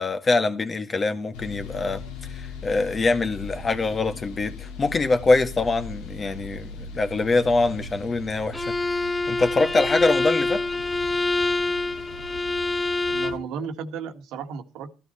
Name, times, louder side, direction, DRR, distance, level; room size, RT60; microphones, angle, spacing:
voice 1, 0.0-2.0 2.3-8.6 9.3-10.6, left 3 dB, 35° left, 1.7 m, -24 dB
sound 1, 1.3-13.4, left 3 dB, 90° left, 2.4 m, -39 dB
Bowed string instrument, 8.5-13.5, left 2 dB, 15° left, 0.7 m, -26 dB
voice 2, 13.1-14.9, right 6 dB, 75° right, 1.7 m, -34 dB
13.5 x 12.5 x 4.4 m
supercardioid pair, 75°, 0 cm